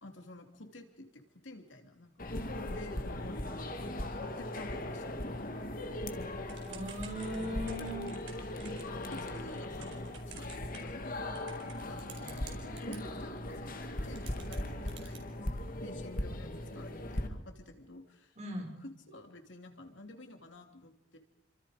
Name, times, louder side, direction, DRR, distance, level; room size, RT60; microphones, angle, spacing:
voice 1, 0.0-3.5 3.8-5.6 8.3-12.2 12.5-21.2, left 1 dB, 70° left, 5 dB, 3.0 m, -51 dB
sound 1, 2.2-17.3, left 1 dB, 45° left, 2.2 m, -39 dB
Typing / Telephone, 6.5-13.0 13.8-13.9 14.2-15.2, right 9 dB, 75° right, 4.9 m, -52 dB
voice 2, 6.6-8.1 12.2-12.4 18.4-18.7, equal, 40° right, 2 dB, 6.4 m, -39 dB
29.0 x 25.5 x 5.1 m, 0.74 s
head